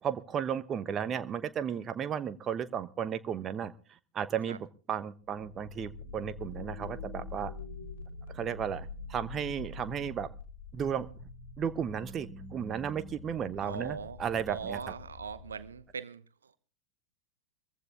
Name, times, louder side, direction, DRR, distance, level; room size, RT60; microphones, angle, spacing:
voice 1, 0.0-3.7 4.1-4.6 4.9-7.5 8.3-10.3 10.7-11.1 11.6-14.8, right 8 dB, 25° right, 1.0 m, -34 dB
sound 1, 5.2-15.9, left 3 dB, 60° left, 3.8 m, -45 dB
voice 2, 13.5-14.2 14.5-16.6, right 6 dB, 70° right, 0.9 m, -40 dB
21.0 x 15.0 x 3.5 m
figure-of-eight pair, 90°, 0 cm